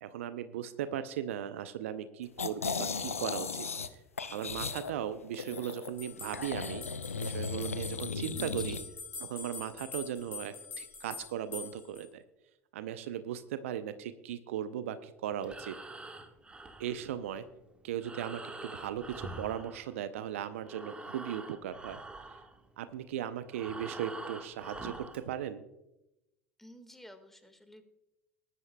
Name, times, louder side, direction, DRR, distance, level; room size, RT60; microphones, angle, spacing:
voice 1, 0.0-3.7 4.3-6.8 7.1-8.8 9.2-12.2 12.7-15.7 16.8-17.4 17.8-22.0 22.8-25.6, right 10 dB, 70° right, 12 dB, 0.6 m, -37 dB
sound 1, 2.4-3.9 4.2-5.9 6.3-8.8, left 5 dB, 90° left, 0.5 m, -36 dB
sound 2, 6.0-12.0, left 5 dB, 30° left, 4.9 m, -44 dB
voice 2, 8.3-8.8 26.6-27.8, equal, 5° left, 8 dB, 1.7 m, -51 dB
Breathing, 15.3-20.3 20.6-25.3, right 2 dB, 15° right, 1.4 m, -45 dB
19.5 x 11.0 x 2.2 m, 0.94 s
figure-of-eight pair, 70°, 7 cm